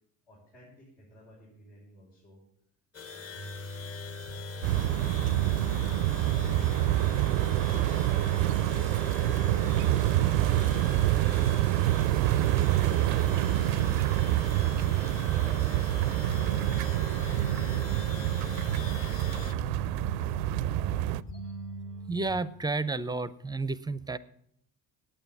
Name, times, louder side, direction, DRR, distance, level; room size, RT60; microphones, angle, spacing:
voice 1, 0.3-2.4 3.0-3.6 4.5-6.2 6.7-7.1 8.1-11.6 12.1-14.3 14.8-18.4, equal, 75° left, -8 dB, 5.8 m, -55 dB
sound 1, 2.9-19.5, left 6 dB, 30° left, 1.1 m, -43 dB
sound 2, 3.3-22.4, equal, 50° left, 1.9 m, -41 dB
sound 3, 4.6-21.2, right 15 dB, 70° right, 0.5 m, -27 dB
voice 2, 22.1-24.2, right 3 dB, 10° right, 18 dB, 0.5 m, -31 dB
9.0 x 8.9 x 8.4 m, 0.70 s
hypercardioid pair, 55°, 44 cm